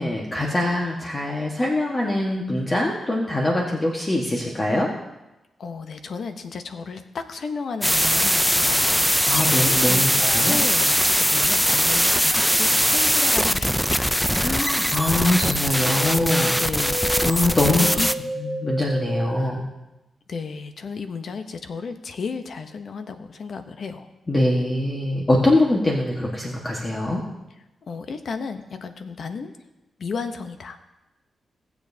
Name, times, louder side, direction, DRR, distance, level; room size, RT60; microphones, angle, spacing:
voice 1, 0.0-4.9 9.3-10.6 14.4-16.6 17.2-18.0 18.4-19.7 24.3-27.2, left 1 dB, 30° left, -2 dB, 1.4 m, -23 dB
voice 2, 5.6-9.1 9.8-10.2 10.5-14.1 16.6-17.2 17.7-18.1 20.3-24.1 27.9-29.5 30.0-30.8, left 5 dB, 70° left, 8 dB, 0.8 m, -33 dB
sound 1, 7.8-18.1, equal, ahead, 0.5 m, -21 dB
sound 2, 15.7-19.4, equal, 50° left, 4.1 m, -30 dB
18.0 x 7.1 x 2.7 m, 0.98 s
cardioid pair, 60°, 0 cm